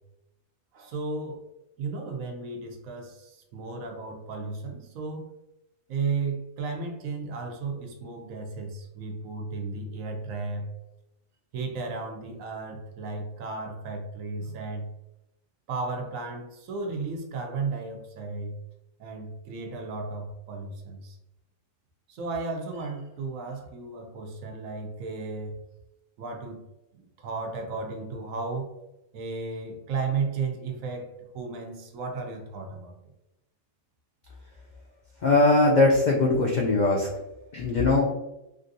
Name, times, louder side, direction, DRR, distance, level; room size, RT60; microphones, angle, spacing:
voice 1, 0.7-1.4 1.8-5.3 5.9-10.7 11.5-14.9 15.7-18.6 19.0-21.2 22.1-25.6 26.2-26.6 26.9-28.7 29.1-33.0, right 4 dB, 80° right, 3 dB, 1.1 m, -34 dB
voice 2, 35.2-37.1 37.5-38.1, left 2 dB, 70° left, -2 dB, 0.4 m, -20 dB
3.2 x 2.5 x 2.6 m, 0.89 s
omnidirectional pair, 1.4 m